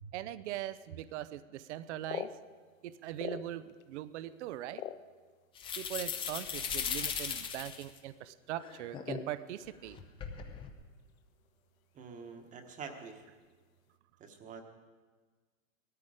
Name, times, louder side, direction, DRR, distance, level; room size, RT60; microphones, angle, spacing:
voice 1, 0.1-2.4 2.8-4.8 5.8-10.0, right 13 dB, 55° right, 15 dB, 0.6 m, -41 dB
sound 1, 1.7-3.8 4.2-5.7 6.4-6.5 6.8-7.1 7.4-7.8 8.1-8.4 9.0-10.0 10.3-11.2 11.4-11.5 11.9-12.2 12.7-13.1, left 10 dB, 75° left, 0.9 m, -44 dB
sound 2, 5.5-8.0 8.6-9.2 9.8-10.7, left 7 dB, 15° left, 0.6 m, -38 dB
voice 2, 11.9-13.2 14.2-14.6, right 5 dB, 20° right, 6 dB, 1.2 m, -46 dB
17.5 x 13.5 x 4.9 m, 1.4 s
hypercardioid pair, 150°, 41 cm